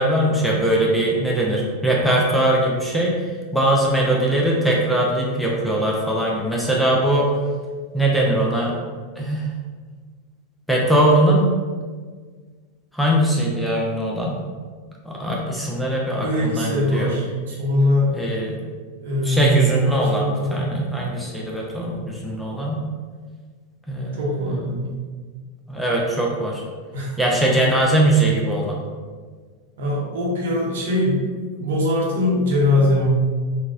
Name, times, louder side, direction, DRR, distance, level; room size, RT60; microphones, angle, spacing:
voice 1, 0.0-3.1 3.5-7.3 7.9-8.7 9.2-9.4 10.7-11.5 12.9-14.4 15.1-17.1 18.1-18.6 19.3-22.8 23.9-24.6 25.7-26.6 27.2-28.8, right 1 dB, ahead, -3 dB, 0.5 m, -21 dB
voice 2, 16.2-18.1 19.0-20.7 24.2-24.9 26.9-27.4 27.7-27.8 29.8-31.2 31.5-33.1, left 1 dB, 60° right, -4 dB, 0.8 m, -22 dB
3.9 x 2.2 x 2.5 m, 1.5 s
figure-of-eight pair, 90°, 0 cm